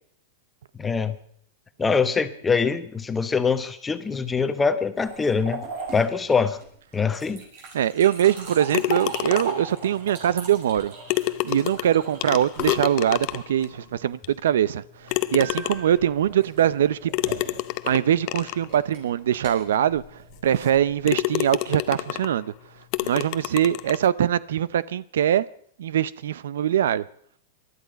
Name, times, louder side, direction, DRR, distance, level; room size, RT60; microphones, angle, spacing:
voice 1, 0.8-1.1 1.8-5.7 5.9-6.6 6.9-7.4, left 5 dB, 10° left, 1.0 m, -23 dB
sound 1, 5.0-13.6 15.4-21.1, right 4 dB, 55° right, 6.2 m, -38 dB
voice 2, 7.7-10.9 11.4-17.1 17.9-20.0 20.4-22.5 23.0-25.4 25.8-27.0, right 10 dB, 80° right, 0.5 m, -22 dB
sound 2, 8.7-9.7 10.7-10.8 11.1-13.6 14.2-14.3 15.1-16.0 17.1-18.7 19.3-19.4 20.0-20.1 20.6-20.8 21.1-22.4 22.9-24.1, left 18 dB, 45° left, 0.6 m, -28 dB
19.5 x 12.5 x 5.1 m
supercardioid pair, 145°, 0 cm